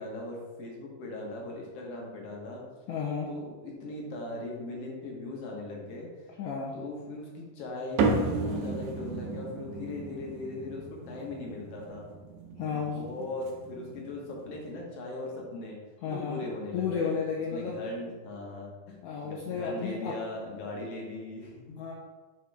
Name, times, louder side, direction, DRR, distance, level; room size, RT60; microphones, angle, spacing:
voice 1, 0.0-2.6 3.3-6.1 6.7-12.0 12.7-15.8 16.0-17.1 17.5-21.8, left 2 dB, 60° left, -2 dB, 1.8 m, -39 dB
voice 2, 2.9-3.3 6.4-6.8 12.6-13.3 16.0-17.8 19.0-20.2 21.8-21.9, left 6 dB, 80° left, -2 dB, 1.8 m, -33 dB
sound 1, 8.0-14.7, right 3 dB, 70° right, 1.9 m, -34 dB
7.6 x 5.1 x 3.4 m, 1.3 s
omnidirectional pair, 4.1 m